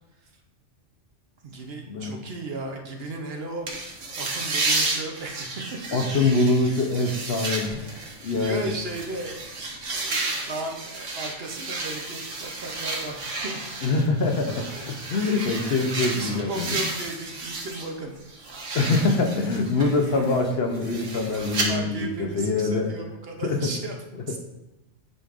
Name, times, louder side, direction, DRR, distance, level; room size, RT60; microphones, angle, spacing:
voice 1, 1.4-3.7 4.2-5.6 7.2-7.5 8.3-9.4 9.9-13.7 15.2-15.7 16.1-18.2 21.7-24.0 24.3-24.4, right 2 dB, 60° right, 2 dB, 1.0 m, -35 dB
sound 1, 3.7-17.9 18.2-21.7, right 3 dB, 90° right, 1.4 m, -32 dB
voice 2, 5.9-8.7 13.8-16.8 18.7-22.9 23.4-23.7, left 3 dB, 60° left, 3 dB, 0.9 m, -24 dB
9.0 x 4.9 x 2.5 m, 0.98 s
omnidirectional pair, 1.2 m